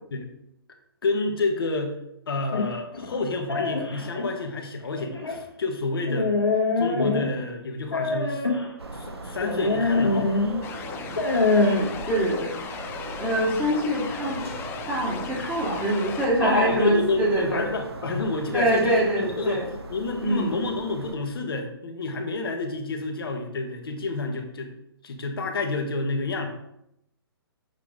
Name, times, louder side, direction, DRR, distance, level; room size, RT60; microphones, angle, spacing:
voice 1, 1.0-2.0 2.3-6.3 6.8-8.4 8.9-10.3 16.4-19.6 19.9-24.7 25.0-26.5, left 3 dB, 65° left, 4 dB, 1.3 m, -29 dB
sound 1, 2.5-4.3 4.9-5.4 6.1-7.4 7.9-8.7 9.4-10.6 11.0-11.8, left 3 dB, 80° left, 1.6 m, -24 dB
sound 2, 8.8-21.1, right 2 dB, 85° right, 1.0 m, -39 dB
sound 3, 10.6-16.3, left 6 dB, 15° left, 0.4 m, -37 dB
voice 2, 11.6-12.8 13.1-14.4 14.9-17.7 18.5-19.7 20.2-20.5, right 1 dB, 10° right, -7 dB, 2.1 m, -24 dB
6.8 x 4.9 x 3.7 m, 0.81 s
figure-of-eight pair, 130°, 13 cm